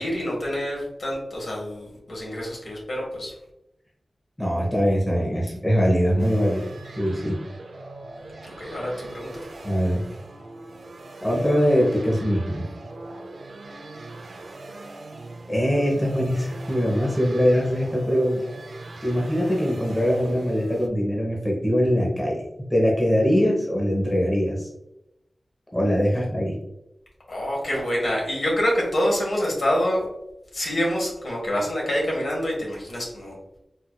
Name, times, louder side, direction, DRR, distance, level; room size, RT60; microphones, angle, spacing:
voice 1, 0.0-3.4 8.4-9.3 27.3-30.0 30.5-33.3, equal, 65° left, -3 dB, 1.4 m, -26 dB
voice 2, 4.4-7.4 9.6-10.0 11.2-12.7 15.5-18.4 19.0-22.4 22.7-24.7 25.7-26.6, equal, 15° left, -3 dB, 0.9 m, -22 dB
sound 1, 6.2-20.9, right 2 dB, 65° right, 0.4 m, -41 dB
4.4 x 2.7 x 2.3 m, 0.85 s
wide cardioid pair, 95°, 0 cm